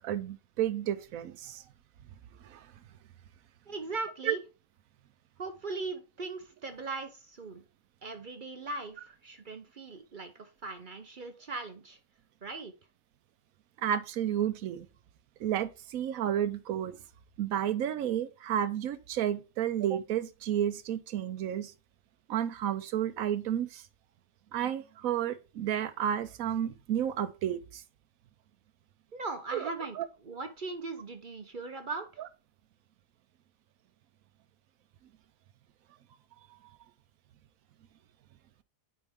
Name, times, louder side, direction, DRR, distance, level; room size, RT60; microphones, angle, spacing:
voice 1, 0.0-1.6 2.4-2.7 4.3-4.4 13.8-14.9 15.4-17.0 17.4-21.7 22.3-23.9 24.5-27.8 29.5-29.6 29.9-30.1, right 10 dB, 75° right, 1.1 m, -31 dB
voice 2, 3.7-4.4 5.4-7.6 8.0-12.0 12.4-12.7 29.1-30.0 30.2-32.2, right 3 dB, 45° right, 0.7 m, -39 dB
8.9 x 4.3 x 3.5 m
omnidirectional pair, 1.5 m